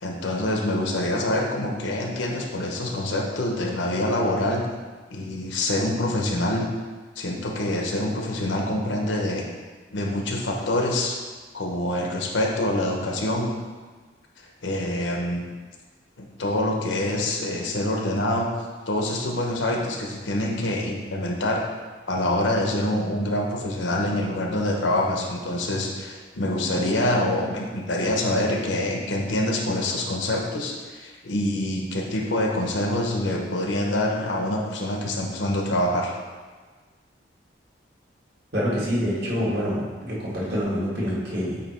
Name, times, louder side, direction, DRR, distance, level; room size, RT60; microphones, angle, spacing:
voice 1, 0.0-4.6 5.1-6.6 7.2-9.4 9.9-11.2 11.5-13.5 14.6-15.4 16.2-18.5 18.9-21.6 22.1-36.1, left 1 dB, 75° left, 0 dB, 0.9 m, -25 dB
voice 2, 38.5-41.6, equal, 55° right, -6 dB, 1.8 m, -26 dB
8.3 x 2.9 x 4.3 m, 1.4 s
head